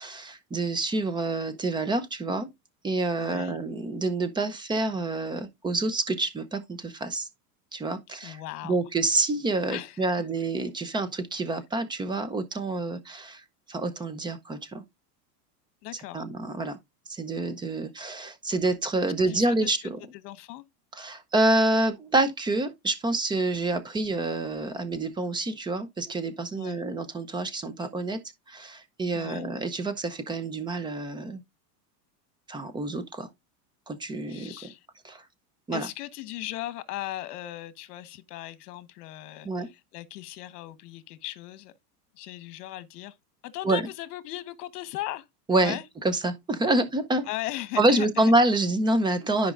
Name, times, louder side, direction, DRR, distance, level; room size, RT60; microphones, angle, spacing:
voice 1, 0.0-2.5 2.8-7.3 7.7-13.4 13.7-14.8 16.1-16.8 17.1-20.0 20.9-28.2 28.5-31.4 32.5-33.3 33.9-34.5 35.0-35.2 35.7-35.9 39.4-39.7 43.6-43.8 45.5-45.8 46.0-47.2 47.8-49.5, right 2 dB, 10° right, 0.6 m, -27 dB
voice 2, 3.2-3.6 8.2-8.8 9.7-10.0 15.8-16.2 19.3-20.6 26.5-26.8 29.1-29.5 34.3-34.9 35.7-41.7 42.1-43.1 43.4-45.3 45.6-45.8 47.3-48.3, left 15 dB, 70° left, 1.3 m, -38 dB
13.0 x 5.2 x 2.5 m
supercardioid pair, 140°, 49 cm